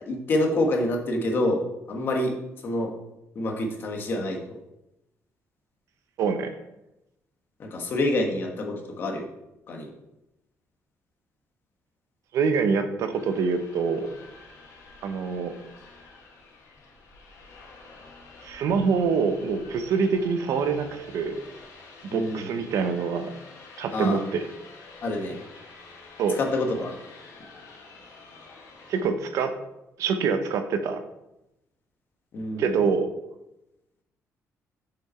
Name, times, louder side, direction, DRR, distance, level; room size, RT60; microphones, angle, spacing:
voice 1, 0.1-1.6 1.9-2.3 2.6-2.9 3.3-4.6 7.6-9.3 9.7-9.9 22.1-22.5 23.9-24.2 25.0-25.3 26.3-26.9 32.3-32.8, left 1 dB, 40° left, 2 dB, 1.3 m, -27 dB
voice 2, 6.2-6.5 12.3-14.1 15.0-15.5 18.4-21.4 22.1-23.3 23.8-24.4 26.2-26.4 28.9-29.6 30.0-31.0 32.6-33.1, right 5 dB, 70° right, 8 dB, 0.8 m, -25 dB
sound 1, 13.1-29.0, left 3 dB, 85° left, 2.0 m, -48 dB
6.9 x 5.8 x 4.3 m, 0.90 s
cardioid pair, 170°, 6 cm